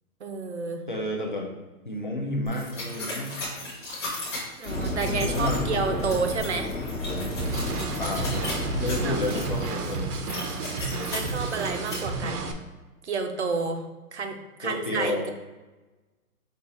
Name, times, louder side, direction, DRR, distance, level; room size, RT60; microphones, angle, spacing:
voice 1, 0.2-0.8 4.6-6.7 9.0-9.2 11.1-12.5 13.0-13.8 14.1-15.3, right 4 dB, 50° right, 6 dB, 0.5 m, -30 dB
voice 2, 0.9-1.5 1.8-3.4 5.0-5.7 8.0-8.3 8.8-10.1 14.6-15.3, left 1 dB, 35° left, 0 dB, 0.4 m, -30 dB
sound 1, 2.5-11.9, left 2 dB, 20° left, 0.8 m, -37 dB
sound 2, 4.6-9.7, left 1 dB, 55° left, 0.9 m, -31 dB
sound 3, 7.4-12.5, right 3 dB, 80° right, 0.8 m, -32 dB
5.3 x 2.4 x 4.0 m, 1.2 s
hypercardioid pair, 175°, 45 cm